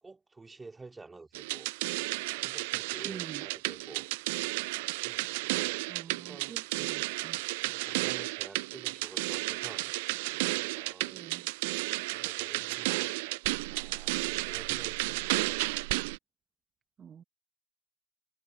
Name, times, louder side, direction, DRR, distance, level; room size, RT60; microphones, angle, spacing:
voice 1, 0.0-1.7 2.4-4.1 5.0-5.4 6.1-6.6 7.6-9.9 10.3-11.2 11.9-15.3, right 3 dB, 15° right, 3.4 m, -50 dB
sound 1, 1.3-16.2, right 24 dB, 65° right, 0.3 m, -33 dB
voice 2, 3.0-3.5 5.9-7.4 11.0-11.4 17.0-17.2, right 8 dB, 35° right, 1.3 m, -47 dB
hypercardioid pair, 85°, 0 cm